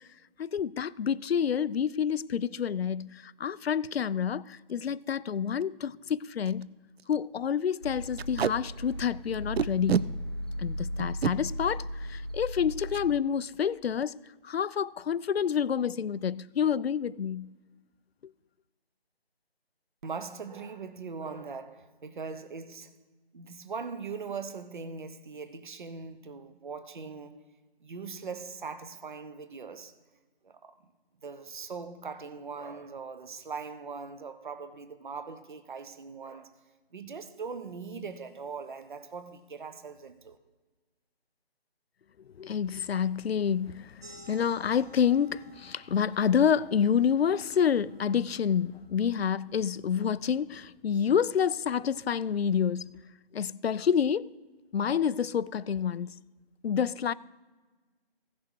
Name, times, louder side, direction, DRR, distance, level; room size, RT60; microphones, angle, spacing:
voice 1, 0.4-6.7 7.1-10.1 10.6-14.2 14.4-17.5 42.4-52.9 53.3-54.3 54.7-56.1 56.6-57.1, left 7 dB, 75° left, 0.5 m, -28 dB
Packing tape duct tape, 4.5-4.7 5.2-5.3 5.5-5.6 6.1-6.2 6.5-6.6 7.0-7.1 8.2-8.5 9.6-10.1 11.0-11.3 12.9-13.1 13.4-13.6 13.8-14.3, right 8 dB, 75° right, 0.5 m, -28 dB
sound 1, 7.8-13.2, equal, 25° left, 0.5 m, -37 dB
voice 2, 20.0-23.0 23.3-27.4 27.8-29.9 30.4-30.9 31.2-36.6 36.9-40.4, right 5 dB, 50° right, 0.8 m, -40 dB
sound 2, 44.0-49.2, right 2 dB, 15° right, 0.8 m, -55 dB
15.5 x 6.0 x 4.6 m
figure-of-eight pair, 165°, 31 cm